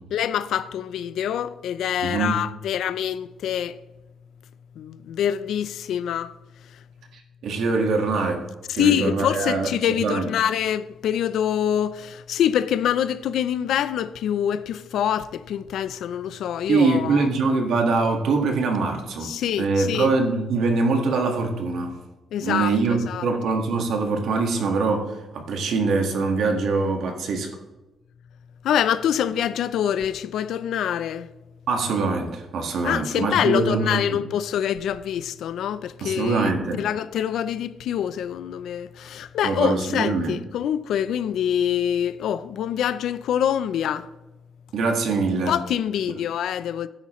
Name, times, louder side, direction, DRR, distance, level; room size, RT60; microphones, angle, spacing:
voice 1, 0.1-3.8 4.8-6.3 8.8-17.3 19.2-20.1 22.3-23.3 28.6-31.3 32.8-36.5 36.8-44.1 45.5-46.9, left 9 dB, 80° left, 0.5 m, -25 dB
voice 2, 2.0-2.4 7.1-8.4 8.7-9.7 10.0-10.3 16.7-19.3 19.6-22.0 22.4-27.5 31.7-34.2 36.0-36.8 39.4-40.4 44.7-45.5, right 4 dB, 70° right, 1.6 m, -23 dB
12.5 x 9.9 x 3.1 m
cardioid pair, 155°, 0 cm